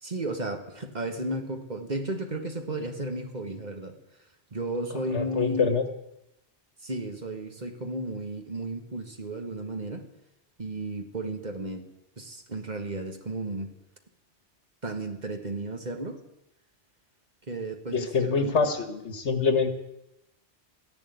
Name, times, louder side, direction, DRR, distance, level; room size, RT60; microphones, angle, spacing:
voice 1, 0.0-4.0 4.5-5.8 6.8-10.1 10.6-11.8 12.2-13.7 14.8-16.2 17.5-18.5, right 2 dB, 40° right, 5 dB, 1.6 m, -34 dB
voice 2, 4.9-5.8 17.9-19.7, left 5 dB, 75° left, 8 dB, 1.8 m, -25 dB
13.5 x 11.0 x 9.4 m, 0.87 s
omnidirectional pair, 1.2 m